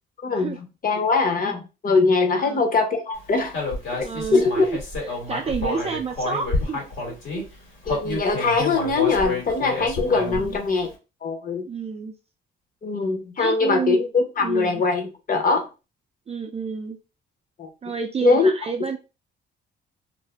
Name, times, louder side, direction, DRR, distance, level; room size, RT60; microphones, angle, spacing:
voice 1, 0.2-0.6 0.8-3.6 4.0-4.5 7.9-10.9 11.2-11.7 12.8-15.7 17.6-17.7 18.2-18.5, left 4 dB, 45° left, 0.9 m, -22 dB
voice 2, 2.3-2.7 4.0-4.6 5.0-6.8 7.1-7.5 10.2-10.6 11.6-12.1 13.4-14.0 14.4-14.8 16.3-17.0 17.8-19.0, right 5 dB, 30° right, 0.4 m, -30 dB
Human voice, 3.5-7.4 7.8-10.6, left 3 dB, 75° left, 1.4 m, -29 dB
2.6 x 2.1 x 3.3 m
cardioid pair, 90°, 20 cm